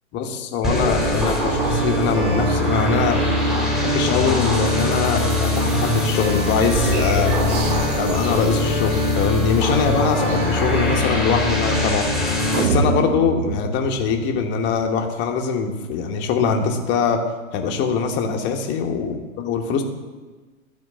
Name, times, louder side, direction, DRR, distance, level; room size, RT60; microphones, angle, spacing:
voice 1, 0.1-3.2 3.8-7.6 7.9-12.1 12.5-17.2 17.5-19.8, left 5 dB, 25° left, 3 dB, 1.1 m, -22 dB
sound 1, 0.6-12.6, left 1 dB, ahead, 1.8 m, -21 dB
sound 2, 0.7-12.0, right 1 dB, 55° right, 1.5 m, -34 dB
sound 3, 12.5-14.8, right 5 dB, 75° right, 0.8 m, -25 dB
12.5 x 4.7 x 7.4 m, 1.3 s
hypercardioid pair, 130°, 42 cm